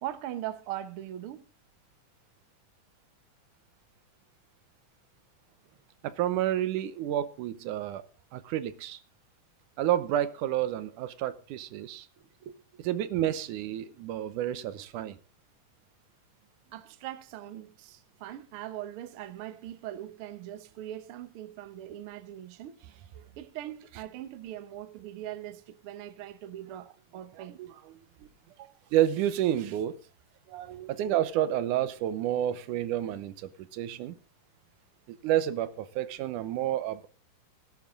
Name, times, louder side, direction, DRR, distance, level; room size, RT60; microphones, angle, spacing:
voice 1, 0.0-1.4 12.2-12.5 16.7-22.8 23.4-27.6 28.5-28.7, right 12 dB, 60° right, 1.5 m, -41 dB
voice 2, 6.0-8.0 8.3-9.0 9.8-12.1 12.8-15.2 23.2-23.3 27.4-27.7 28.9-30.0 30.5-34.2 35.1-37.1, right 12 dB, 85° right, 2.3 m, -30 dB
17.0 x 11.5 x 3.7 m
omnidirectional pair, 3.6 m